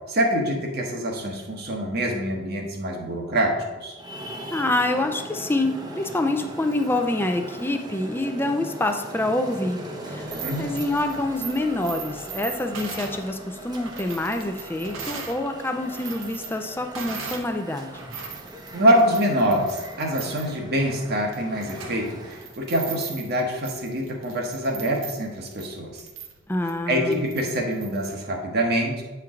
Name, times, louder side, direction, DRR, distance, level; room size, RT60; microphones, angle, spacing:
voice 1, 0.1-4.0 10.3-10.6 18.7-26.0 26.9-29.0, equal, 55° right, 0 dB, 1.1 m, -25 dB
Traffic noise roadway noise, 4.0-22.6, right 1 dB, 20° right, 0.7 m, -40 dB
voice 2, 4.5-9.8 10.0-18.1 26.5-27.3, left 2 dB, 10° left, 5 dB, 0.4 m, -26 dB
sound 1, 10.2-15.4 15.7-17.5 17.9-28.1, right 6 dB, 85° right, 1.0 m, -39 dB
8.4 x 4.5 x 3.7 m, 1.2 s
head